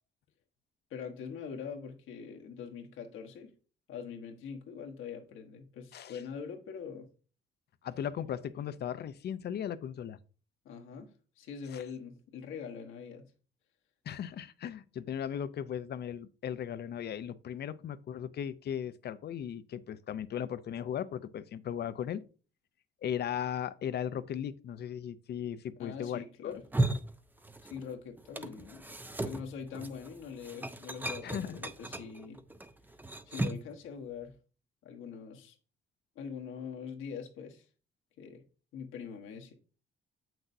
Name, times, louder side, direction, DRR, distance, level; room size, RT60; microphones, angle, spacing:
voice 1, 0.9-3.5 3.9-7.1 10.6-11.1 11.4-13.3 25.8-26.6 27.7-28.9 29.2-32.4 33.3-34.4 34.8-35.6 36.1-37.7 38.2-38.4 38.7-39.5, left 6 dB, 85° left, 1.2 m, -43 dB
voice 2, 7.8-10.2 11.7-11.8 14.1-22.2 23.0-26.6 31.2-31.6, left 9 dB, 55° left, 0.6 m, -37 dB
sound 1, 26.5-27.9 28.2-33.7, right 2 dB, 10° right, 0.5 m, -36 dB
7.7 x 6.0 x 2.7 m
cardioid pair, 90°, 20 cm